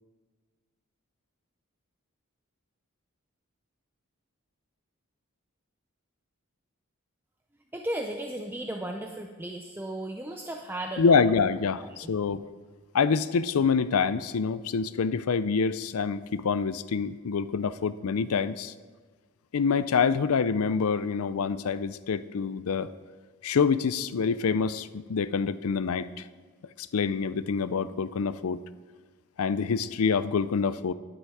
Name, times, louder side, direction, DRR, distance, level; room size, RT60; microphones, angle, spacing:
voice 1, 7.7-11.2 12.0-12.1, right 1 dB, 10° right, 2 dB, 0.5 m, -35 dB
voice 2, 11.0-12.4 12.9-18.7 19.5-22.9 23.4-26.2 26.8-28.6 29.4-30.9, left 5 dB, 75° left, 15 dB, 0.5 m, -26 dB
11.0 x 9.9 x 4.8 m, 1.4 s
head